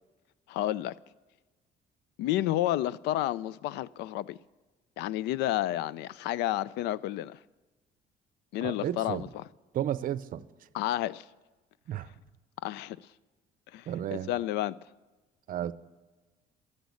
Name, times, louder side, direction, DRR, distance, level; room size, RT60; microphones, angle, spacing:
voice 1, 0.5-1.0 2.2-4.4 5.0-7.4 8.5-9.4 10.7-11.2 12.6-13.0 13.7-13.9 14.3-14.8, left 14 dB, 85° left, 0.4 m, -30 dB
voice 2, 8.6-9.3 9.7-10.5 11.9-12.1 13.9-14.3 15.5-15.7, right 11 dB, 55° right, 0.6 m, -32 dB
12.5 x 10.5 x 8.3 m
cardioid pair, 110°, 17 cm